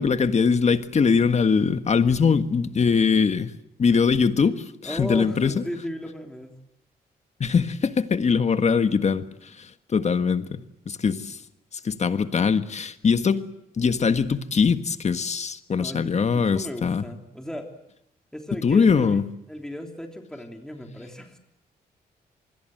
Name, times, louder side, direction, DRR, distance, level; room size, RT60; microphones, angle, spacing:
voice 1, 0.0-3.5 3.8-5.6 7.4-11.4 11.7-13.4 13.8-17.0 18.6-19.2, left 5 dB, 45° left, 1.6 m, -22 dB
voice 2, 4.8-6.6 15.7-17.7 18.3-19.2 19.5-21.4, equal, 5° left, 3.3 m, -36 dB
26.5 x 21.0 x 7.8 m
cardioid pair, 90°, 16 cm